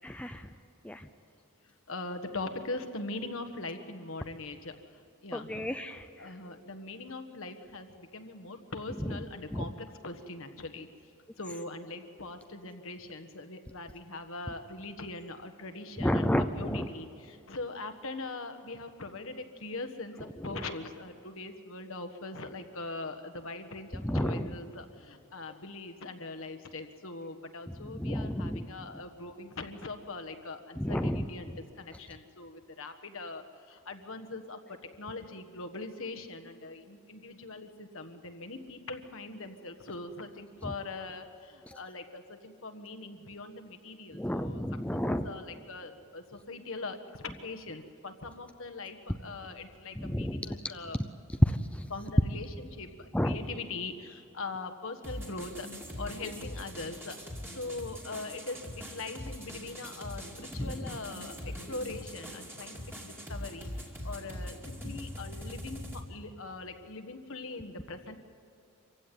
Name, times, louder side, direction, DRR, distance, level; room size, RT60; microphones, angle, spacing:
voice 1, 0.0-0.5 0.8-1.1 5.3-6.1 9.5-9.6 16.0-16.9 24.0-24.5 27.8-28.7 30.8-31.3 40.6-40.7 41.7-41.8 44.1-45.3 50.0-50.6 51.5-51.8 53.1-53.4 60.5-60.7 64.8-64.9, equal, 5° left, 7 dB, 0.5 m, -31 dB
voice 2, 1.9-5.7 6.2-10.9 11.4-16.3 16.6-44.6 44.9-51.0 51.9-55.7 56.0-57.2 57.5-68.1, left 3 dB, 60° left, 8 dB, 1.5 m, -41 dB
sound 1, 55.0-66.0, equal, 10° right, 2.5 m, -42 dB
25.5 x 16.0 x 9.3 m, 2.7 s
head